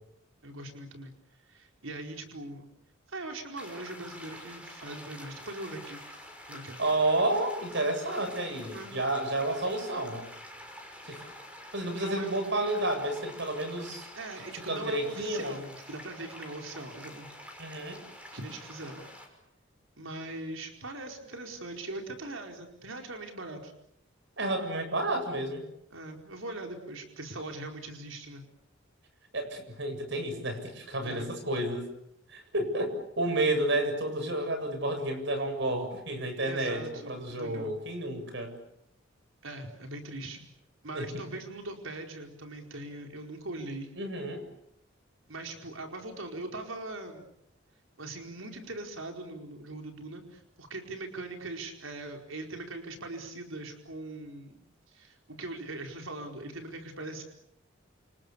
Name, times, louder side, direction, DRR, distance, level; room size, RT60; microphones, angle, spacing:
voice 1, 0.4-1.1 1.4-2.7 3.1-6.0 6.5-6.8 8.7-9.0 11.9-12.3 14.1-17.3 18.3-19.0 20.0-23.7 25.9-28.4 31.0-31.3 36.4-37.7 39.4-40.5 40.8-43.9 45.3-47.2 48.0-54.6 54.9-57.2, right 2 dB, 85° right, 3 dB, 4.7 m, -41 dB
sound 1, 3.6-19.3, left 1 dB, 5° right, 6.0 m, -47 dB
voice 2, 6.8-10.3 11.0-11.2 11.7-14.1 14.6-15.6 17.6-18.0 24.4-25.6 29.3-31.9 32.3-38.5 40.9-41.1 44.0-44.4, right 1 dB, 65° right, 7 dB, 7.8 m, -31 dB
29.5 x 27.5 x 7.1 m, 0.75 s
head